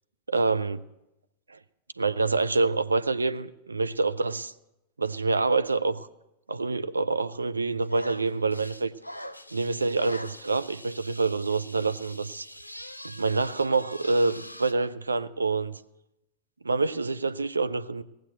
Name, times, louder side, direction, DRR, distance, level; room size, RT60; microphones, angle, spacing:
voice 1, 0.3-0.8 1.5-1.6 2.0-4.5 5.0-6.1 6.5-8.9 9.5-12.5 13.0-15.8 16.6-18.0, right 3 dB, 80° right, 0.5 m, -26 dB
sound 1, 7.8-14.7, equal, 90° left, 0.6 m, -43 dB
17.5 x 7.7 x 7.7 m
figure-of-eight pair, 90°, 0 cm